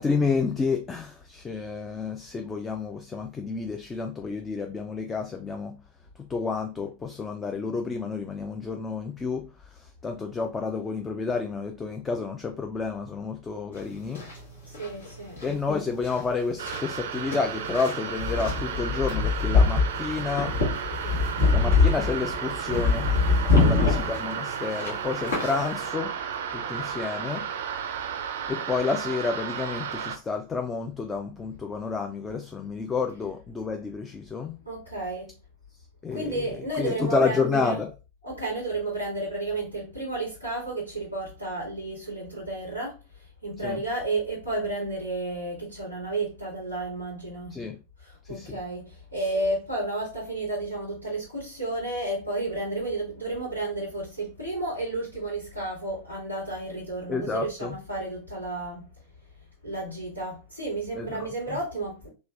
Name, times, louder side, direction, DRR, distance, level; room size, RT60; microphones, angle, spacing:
voice 1, 0.0-5.8 6.3-14.3 15.4-20.6 21.5-26.2 26.5-27.5 28.5-34.6 36.0-37.9 43.6-43.8 47.5-47.8 48.3-48.6 57.1-57.8 61.0-61.3, left 4 dB, 15° left, 0.3 m, -30 dB
sound 1, 13.8-25.9, left 4 dB, 70° left, 1.2 m, -24 dB
voice 2, 14.6-15.4 23.6-24.1 34.6-35.3 36.1-37.8 38.2-47.6 48.0-58.9 59.6-62.1, right 2 dB, 90° left, 1.8 m, -32 dB
sound 2, 16.6-30.2, right 8 dB, 60° right, 0.4 m, -33 dB
3.1 x 2.8 x 2.4 m
figure-of-eight pair, 90°, 0 cm